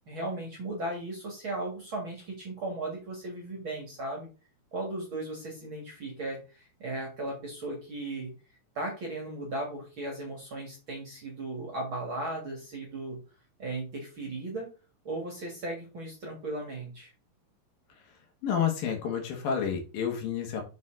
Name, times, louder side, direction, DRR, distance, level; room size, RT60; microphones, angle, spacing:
voice 1, 0.1-4.3 4.7-8.3 8.8-13.2 13.6-14.7 15.0-17.1, right 2 dB, 45° right, -1 dB, 2.0 m, -36 dB
voice 2, 18.4-20.6, left 7 dB, 70° left, 3 dB, 3.0 m, -29 dB
6.6 x 5.6 x 3.8 m, 0.33 s
omnidirectional pair, 4.4 m